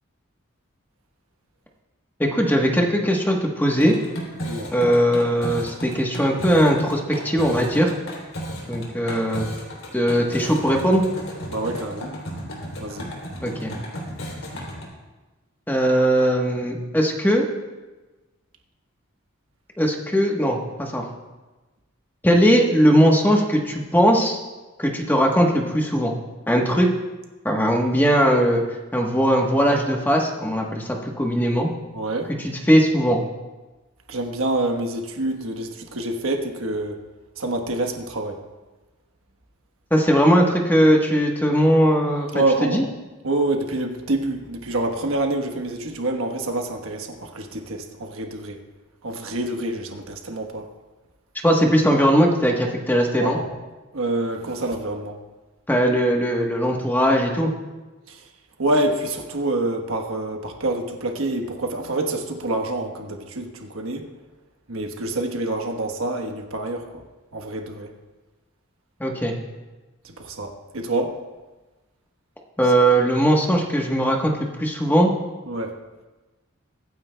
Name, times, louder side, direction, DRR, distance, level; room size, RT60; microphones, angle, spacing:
voice 1, 2.2-3.9 4.7-7.9 8.7-9.5 9.9-11.1 13.4-13.7 15.7-17.4 19.8-21.1 22.2-24.4 24.8-26.1 26.5-26.9 27.4-28.6 28.9-31.7 32.4-33.2 39.9-42.8 51.4-53.4 55.7-57.5 69.0-69.3 72.6-75.1, equal, 10° left, 1 dB, 1.1 m, -19 dB
sound 1, 3.7-14.8, equal, 80° left, 3.0 m, -34 dB
voice 2, 11.5-12.1 12.8-13.1 31.9-32.3 34.1-37.0 37.4-38.4 42.3-42.8 43.2-48.6 49.0-50.7 53.2-53.5 53.9-55.2 58.1-58.2 58.6-64.1 64.7-67.0 67.3-67.9 70.0-71.2 75.5-75.8, right 2 dB, 85° right, 5 dB, 1.2 m, -27 dB
23.5 x 9.4 x 2.2 m, 1.2 s
head